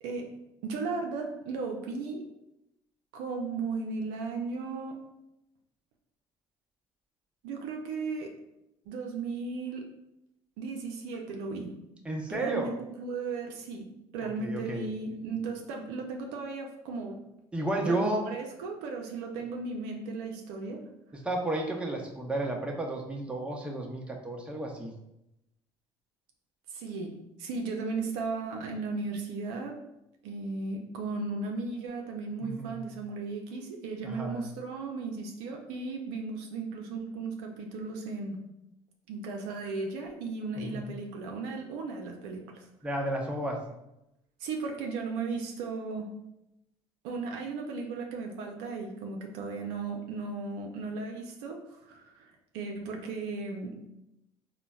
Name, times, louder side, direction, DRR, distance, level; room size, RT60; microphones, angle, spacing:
voice 1, 0.0-0.3 0.6-2.2 3.1-5.0 7.4-8.3 8.9-9.9 10.6-11.7 12.3-17.2 17.9-20.8 26.7-29.8 30.2-38.4 39.1-42.7 44.4-46.1 47.0-53.8, right 4 dB, 80° right, 2 dB, 0.4 m, -36 dB
voice 2, 12.0-12.7 14.4-14.9 17.5-18.3 21.2-24.9 32.4-32.8 34.0-34.4 40.6-40.9 42.8-43.6, right 1 dB, 10° right, 0 dB, 0.6 m, -32 dB
3.8 x 2.1 x 2.3 m, 0.87 s
hypercardioid pair, 65°, 13 cm